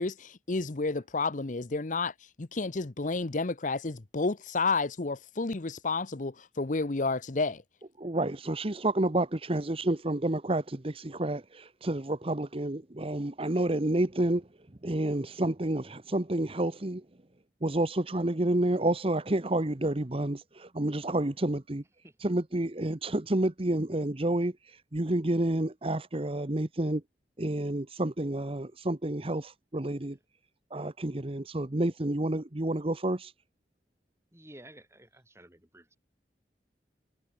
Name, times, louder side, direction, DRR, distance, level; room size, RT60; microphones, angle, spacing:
voice 1, 0.0-7.6, left 3 dB, 45° left, 0.9 m, -31 dB
voice 2, 8.0-14.5 14.8-17.0 17.6-21.8 22.2-27.0 27.4-30.2 30.7-33.3, right 1 dB, 35° right, 1.1 m, -29 dB
voice 3, 34.3-36.0, right 1 dB, 15° right, 6.5 m, -53 dB
head